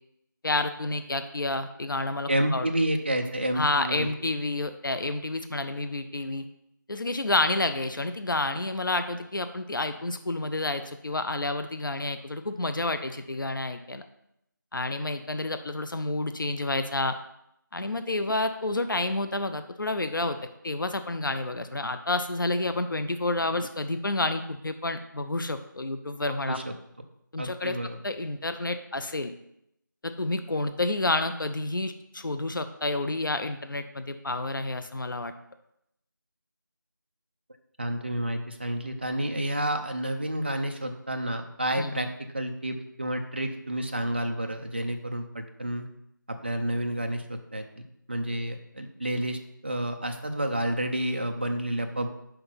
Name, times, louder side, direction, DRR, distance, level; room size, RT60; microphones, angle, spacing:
voice 1, 0.4-2.7 3.5-6.5 6.9-14.1 14.7-17.2 17.7-20.4 20.6-26.6 27.3-27.8 28.0-29.3 30.0-35.3 41.8-42.0, left 2 dB, 70° left, 9 dB, 0.7 m, -29 dB
voice 2, 2.3-4.1 26.5-26.6 27.4-28.0 37.8-42.1 42.3-45.8 46.3-52.1, right 1 dB, 30° right, 4 dB, 0.5 m, -30 dB
5.8 x 5.2 x 5.7 m, 0.79 s
figure-of-eight pair, 175°, 11 cm